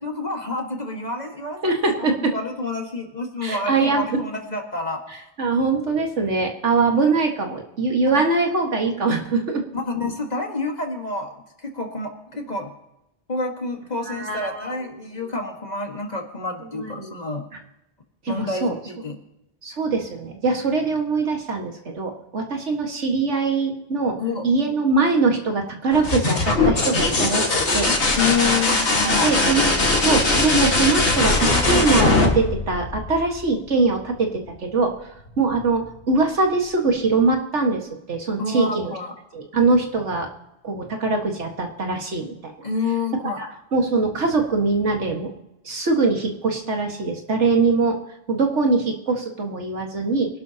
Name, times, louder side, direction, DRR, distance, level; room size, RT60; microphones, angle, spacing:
voice 1, 0.0-1.8 2.2-5.3 8.1-8.3 9.7-12.7 13.3-17.5 18.3-19.2 24.2-24.4 28.2-29.3 38.4-39.1 42.6-43.4, left 3 dB, 35° left, 2 dB, 1.8 m, -28 dB
voice 2, 1.6-2.3 3.4-4.1 5.4-9.6 14.1-14.7 15.2-15.3 16.7-17.1 17.5-17.6 18.3-18.7 19.6-27.9 29.0-29.7 30.0-34.9 35.4-38.9 39.3-40.3 40.6-42.4 43.4-43.5 43.7-45.3 45.6-48.0 48.3-50.3, right 3 dB, 85° right, 2 dB, 2.0 m, -22 dB
sound 1, 25.9-33.5 35.3-35.8, left 2 dB, 75° left, 2.1 m, -20 dB
24.0 x 12.0 x 2.9 m, 0.88 s
omnidirectional pair, 1.2 m